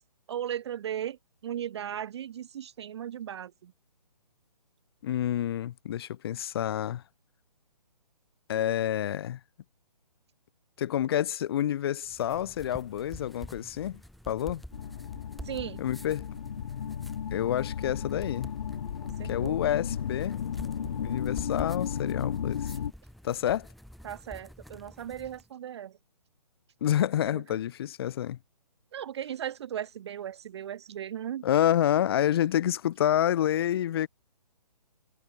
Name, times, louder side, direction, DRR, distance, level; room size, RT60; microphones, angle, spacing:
voice 1, 0.3-1.2 1.4-3.7 15.4-15.8 19.2-19.6 24.0-25.9 27.3-27.4 28.9-31.4, right 10 dB, 40° right, 0.7 m, -37 dB
voice 2, 5.0-7.0 8.5-9.4 10.8-14.0 14.3-14.6 15.8-16.3 17.3-18.5 19.2-20.5 21.0-22.7 23.2-23.7 26.8-28.4 31.4-34.1, left 11 dB, 35° left, 0.7 m, -28 dB
sound 1, 12.0-25.5, equal, ahead, 0.7 m, -48 dB
sound 2, 14.7-22.9, left 8 dB, 50° left, 2.1 m, -34 dB
figure-of-eight pair, 140°, 21 cm